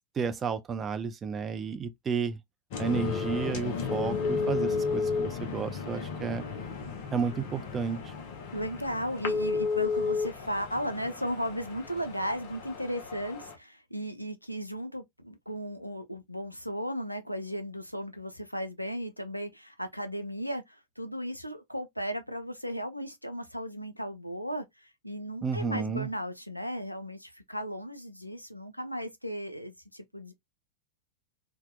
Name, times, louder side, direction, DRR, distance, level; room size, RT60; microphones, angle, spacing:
voice 1, 0.1-2.4 2.8-6.4 7.1-8.1 25.4-26.1, right 6 dB, 20° right, 0.4 m, -32 dB
sound 1, 2.7-13.5, left 4 dB, 50° left, 0.7 m, -33 dB
voice 2, 8.5-30.3, equal, 90° left, 0.4 m, -36 dB
2.7 x 2.2 x 2.2 m
figure-of-eight pair, 90°, 0 cm